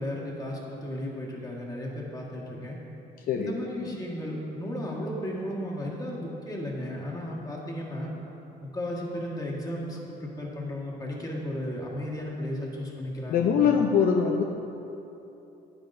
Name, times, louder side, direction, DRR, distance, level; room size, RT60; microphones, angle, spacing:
voice 1, 0.0-2.8 3.3-8.1 8.6-13.5, left 1 dB, 20° left, -3 dB, 1.7 m, -34 dB
voice 2, 13.3-14.4, left 7 dB, 60° left, 2 dB, 0.6 m, -22 dB
10.0 x 9.8 x 2.7 m, 3.0 s
cardioid pair, 110°, 17 cm